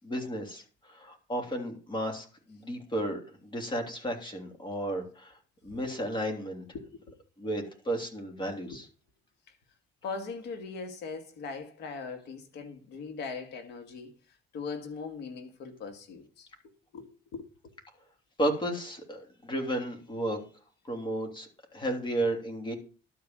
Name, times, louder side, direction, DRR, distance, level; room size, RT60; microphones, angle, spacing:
voice 1, 0.0-6.6 7.4-8.9 18.4-20.4 20.8-22.7, right 1 dB, 25° left, 3.3 m, -33 dB
voice 2, 10.0-14.1 14.5-16.5 16.9-17.0 17.3-17.4, left 4 dB, 80° left, 2.2 m, -39 dB
12.0 x 5.2 x 7.6 m
cardioid pair, 110°, 17 cm